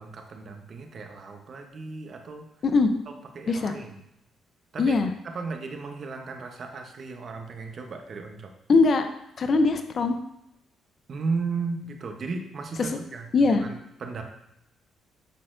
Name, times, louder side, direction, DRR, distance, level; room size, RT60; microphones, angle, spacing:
voice 1, 0.0-2.5 3.3-4.0 4.7-4.9 5.2-8.5 11.1-14.2, right 4 dB, 50° right, 4 dB, 0.9 m, -35 dB
voice 2, 4.8-5.1 8.7-9.0 9.4-10.2 12.8-12.9 13.3-13.6, left 3 dB, 50° left, 7 dB, 0.7 m, -21 dB
9.9 x 4.2 x 2.6 m, 0.80 s
cardioid pair, 90°, 0 cm